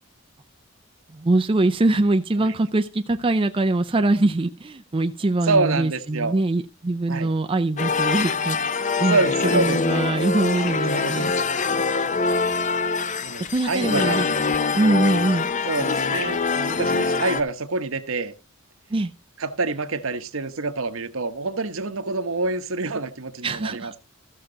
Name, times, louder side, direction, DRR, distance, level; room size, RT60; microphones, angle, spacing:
voice 1, 1.2-9.2 9.5-11.3 13.5-14.2 14.7-15.5 18.9-19.1 23.4-24.0, right 2 dB, 25° right, 0.5 m, -23 dB
voice 2, 5.4-6.3 7.1-7.3 9.0-9.8 10.9-11.4 13.2-14.2 15.6-18.3 19.4-24.0, right 3 dB, 70° right, 1.1 m, -26 dB
sound 1, 7.8-17.4, left 4 dB, 35° left, 0.5 m, -24 dB
14.0 x 6.6 x 3.9 m
head